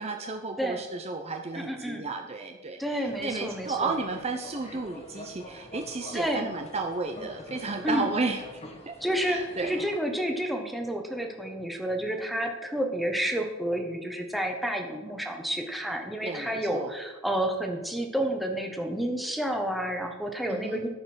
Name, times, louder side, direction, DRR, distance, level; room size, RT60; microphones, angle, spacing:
voice 1, 0.0-9.0 9.3-9.8 16.2-16.9 20.5-20.8, right 3 dB, 30° right, 4 dB, 0.6 m, -33 dB
voice 2, 1.5-2.0 2.8-3.9 6.1-6.5 7.8-8.1 9.0-20.9, right 1 dB, ahead, 3 dB, 1.2 m, -30 dB
sound 1, 3.0-10.0, left 1 dB, 30° left, 1.6 m, -45 dB
14.0 x 5.5 x 6.1 m, 1.2 s
head